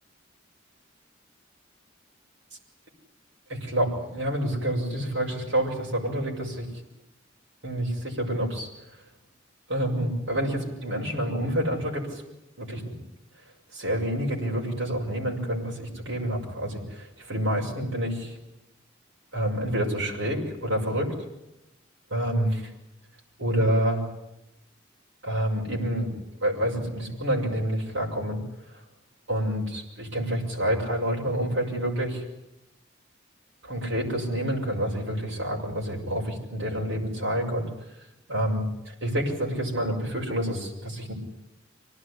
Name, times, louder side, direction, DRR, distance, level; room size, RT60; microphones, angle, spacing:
voice 1, 3.5-6.7 7.6-8.7 9.7-12.2 12.6-13.0 13.7-18.4 19.3-21.1 22.1-22.7 23.4-24.0 25.2-26.1 26.4-28.4 29.3-32.2 33.6-37.7 38.3-41.1, right 1 dB, 75° right, -1 dB, 6.1 m, -28 dB
26.0 x 18.5 x 9.9 m, 0.88 s
head